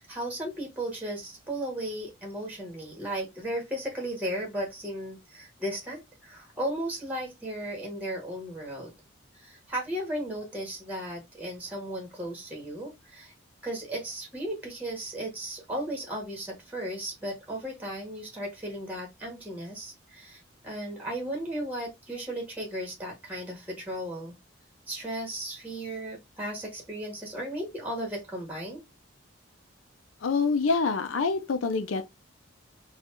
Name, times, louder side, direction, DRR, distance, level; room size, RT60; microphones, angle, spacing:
voice 1, 0.0-8.9 9.3-13.3 13.6-24.3 24.9-28.8, right 1 dB, 10° right, 1.3 m, -35 dB
voice 2, 30.2-32.0, left 4 dB, 85° left, 0.5 m, -26 dB
4.3 x 2.4 x 2.5 m
head